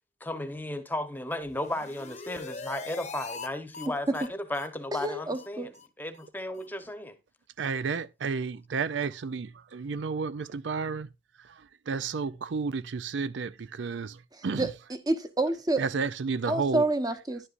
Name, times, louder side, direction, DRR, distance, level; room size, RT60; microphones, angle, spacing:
voice 1, 0.2-7.2, left 1 dB, 10° left, 1.0 m, -35 dB
sound 1, 1.4-3.5 3.7-3.9 4.1-4.3 4.5-4.7 4.9-5.1 5.3-5.5 5.7-5.9 6.1-6.3 6.6-6.7, left 4 dB, 40° left, 0.9 m, -41 dB
voice 2, 4.9-5.7 14.5-14.7 15.1-15.8 16.5-17.4, right 2 dB, 20° right, 1.0 m, -28 dB
voice 3, 7.6-11.1 11.4-14.7 15.8-16.8, right 5 dB, 75° right, 0.5 m, -32 dB
11.0 x 11.0 x 2.5 m
head